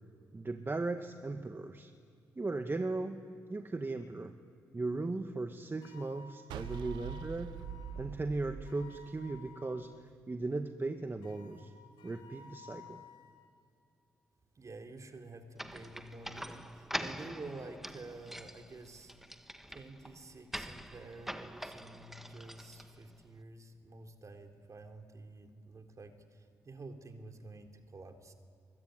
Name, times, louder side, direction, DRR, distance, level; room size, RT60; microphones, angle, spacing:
voice 1, 0.3-1.9 2.4-3.2 3.5-4.4 4.7-7.5 8.0-9.9 10.3-11.7 12.0-13.0, right 3 dB, 30° right, 7 dB, 1.8 m, -37 dB
sound 1, 5.8-7.9 8.6-9.9 11.2-13.4, left 4 dB, 80° left, 5.3 m, -55 dB
sound 2, 6.5-9.7, right 8 dB, 80° right, 1.1 m, -44 dB
voice 2, 14.5-28.3, right 3 dB, 45° right, 4 dB, 3.8 m, -50 dB
sound 3, 15.6-23.2, equal, 5° right, 1.8 m, -44 dB
22.5 x 22.0 x 9.7 m, 2.4 s
hypercardioid pair, 45°, 8 cm